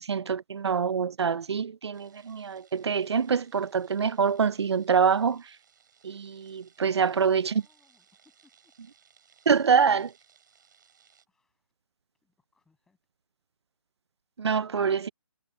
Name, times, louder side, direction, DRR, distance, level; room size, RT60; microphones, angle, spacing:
voice 1, 0.0-5.4 6.0-7.4 9.5-10.1 14.4-15.1, right 6 dB, 70° right, 0.7 m, -25 dB
sound 1, 1.9-11.3, right 7 dB, 45° right, 5.7 m, -63 dB
voice 2, 6.8-8.7 11.3-11.7 12.2-13.0, left 4 dB, 5° left, 7.4 m, -68 dB
hypercardioid pair, 170°, 15 cm